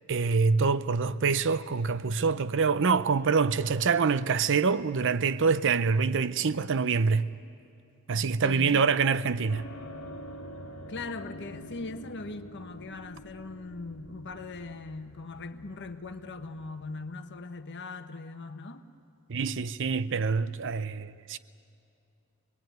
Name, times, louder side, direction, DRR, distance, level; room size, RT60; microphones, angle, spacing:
voice 1, 0.1-7.3 8.1-9.7 19.3-21.4, right 5 dB, 60° right, 0.6 m, -25 dB
voice 2, 8.4-8.9 10.9-18.9, left 3 dB, 55° left, 1.1 m, -40 dB
sound 1, 9.5-17.8, equal, 85° left, 1.5 m, -47 dB
25.5 x 20.5 x 9.2 m
head